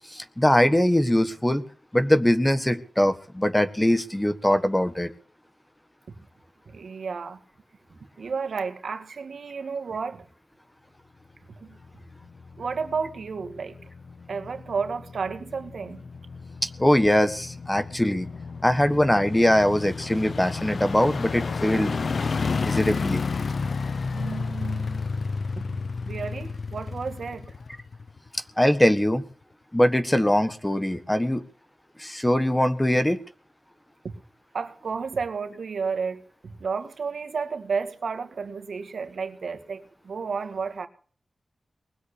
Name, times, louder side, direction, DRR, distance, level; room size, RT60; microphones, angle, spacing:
voice 1, 0.0-1.6 1.9-5.1 16.6-18.3 18.6-22.0 22.6-23.2 28.6-29.2 29.7-31.4 32.0-33.2, left 1 dB, 10° left, 1.5 m, -22 dB
voice 2, 6.7-7.4 8.2-10.2 11.5-11.8 12.6-13.8 14.3-16.0 24.1-25.1 25.6-27.5 34.0-34.1 34.5-40.9, right 5 dB, 90° right, 2.0 m, -32 dB
sound 1, 11.8-28.4 28.7-28.8, left 4 dB, 70° left, 0.7 m, -32 dB
20.5 x 8.1 x 8.4 m
wide cardioid pair, 85°, 0 cm